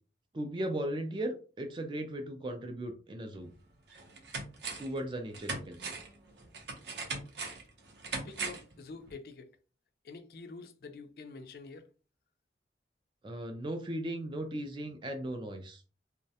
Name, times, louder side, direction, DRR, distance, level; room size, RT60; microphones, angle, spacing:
voice 1, 0.3-3.5 4.8-5.9 13.2-15.8, right 1 dB, 25° right, 0.3 m, -37 dB
sound 1, 3.3-3.4 3.9-5.0 5.3-8.7 9.1-9.2, right 4 dB, 80° right, 0.7 m, -40 dB
voice 2, 8.1-9.5 10.0-11.9, left 4 dB, 55° left, 0.3 m, -47 dB
2.3 x 2.1 x 2.7 m
head